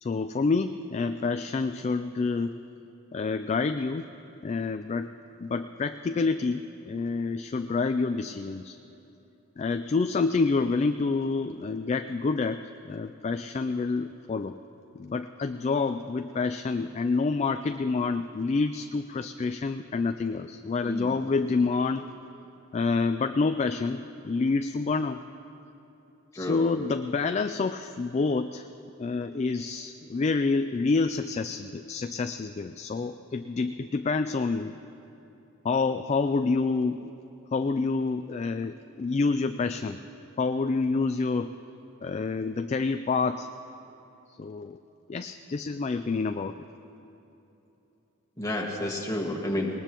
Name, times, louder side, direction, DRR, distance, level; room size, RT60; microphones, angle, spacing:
voice 1, 0.0-2.5 3.1-4.1 4.4-5.1 5.4-8.8 9.6-14.6 14.9-22.0 22.7-25.2 26.3-28.6 29.0-34.7 35.6-37.1 37.5-40.0 40.4-41.5 42.0-43.5 44.4-44.8 45.1-46.5, left 4 dB, 30° left, 8 dB, 0.3 m, -28 dB
voice 2, 1.6-1.9 20.9-21.1 21.6-21.7 26.3-26.6 48.4-49.7, left 1 dB, 15° left, -1 dB, 1.7 m, -31 dB
20.0 x 19.5 x 3.0 m, 3.0 s
head